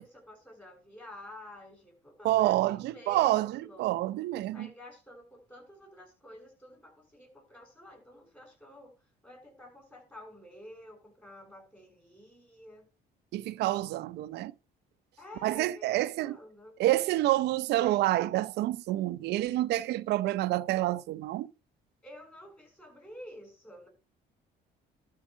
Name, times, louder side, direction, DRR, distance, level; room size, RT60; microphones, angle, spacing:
voice 1, 0.0-3.9 4.5-8.9 9.2-12.9 15.2-16.8 22.0-23.9, left 1 dB, 10° left, 7.0 m, -50 dB
voice 2, 2.2-4.7 13.3-14.5 15.4-16.4 16.8-21.5, right 15 dB, 80° right, 0.7 m, -28 dB
12.0 x 4.8 x 6.2 m
cardioid pair, 110°, 17 cm